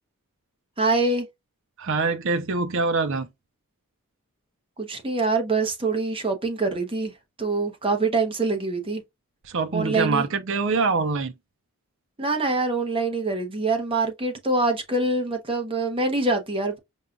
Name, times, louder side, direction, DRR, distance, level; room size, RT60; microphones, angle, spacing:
voice 1, 0.8-1.3 4.8-7.1 7.4-9.0 9.7-10.2 12.2-16.8, right 3 dB, 25° right, 0.9 m, -24 dB
voice 2, 1.8-3.3 9.4-11.3, right 4 dB, 60° right, 0.5 m, -24 dB
5.4 x 2.3 x 2.4 m
head